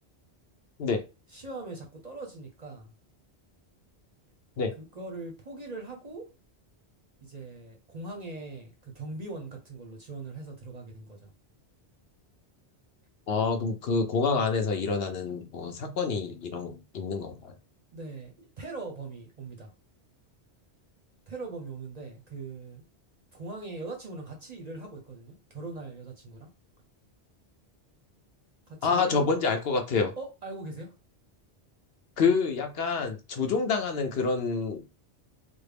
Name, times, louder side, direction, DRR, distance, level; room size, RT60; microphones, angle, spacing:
voice 1, 1.3-2.9 4.8-6.3 7.2-11.3 17.9-19.7 21.3-22.8 23.3-26.5 28.7-29.4 30.2-30.9 33.4-33.5, right 3 dB, 45° right, 0.6 m, -41 dB
voice 2, 13.3-17.5 28.8-30.1 32.2-34.9, left 4 dB, 65° left, 0.8 m, -27 dB
3.5 x 2.1 x 3.3 m
omnidirectional pair, 1.2 m